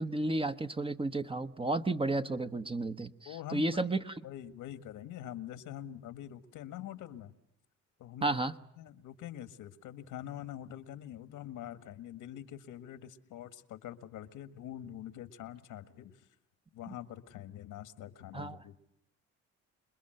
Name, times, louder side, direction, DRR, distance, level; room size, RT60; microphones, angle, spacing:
voice 1, 0.0-4.2 8.2-8.5 18.3-18.6, right 2 dB, 20° right, 10 dB, 1.1 m, -32 dB
voice 2, 3.2-3.9 4.2-7.3 8.0-8.4 8.8-16.3 16.7-18.8, left 11 dB, 85° left, 12 dB, 1.7 m, -45 dB
27.5 x 21.5 x 7.8 m, 0.78 s
cardioid pair, 90°, 30 cm